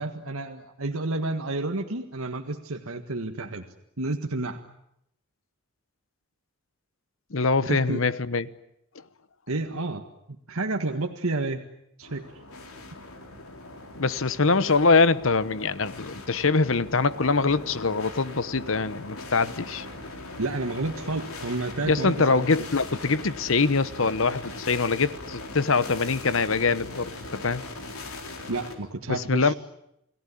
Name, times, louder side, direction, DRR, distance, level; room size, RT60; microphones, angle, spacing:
voice 1, 0.0-3.7 4.0-4.6 7.7-8.0 9.5-10.0 10.5-11.6 12.0-12.2 20.4-22.5 28.5-29.5, right 2 dB, 90° right, 1.8 m, -30 dB
voice 2, 7.3-8.5 14.0-19.9 21.8-27.6 29.1-29.5, left 4 dB, 70° left, 1.0 m, -23 dB
sound 1, 12.0-28.7, left 2 dB, 85° left, 4.2 m, -40 dB
29.5 x 18.5 x 10.0 m
head